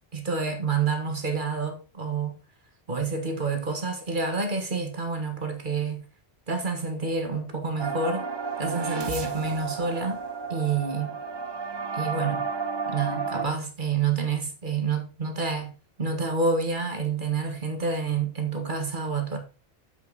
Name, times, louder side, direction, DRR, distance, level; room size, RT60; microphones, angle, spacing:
voice 1, 0.1-2.4 2.9-6.0 6.5-8.3 8.6-10.2 10.5-11.2 11.9-12.5 12.9-15.7 16.0-19.4, right 4 dB, 50° right, 1.6 m, -28 dB
sound 1, 7.8-13.5, right 5 dB, 30° right, 0.5 m, -32 dB
7.5 x 6.5 x 3.9 m
omnidirectional pair, 1.1 m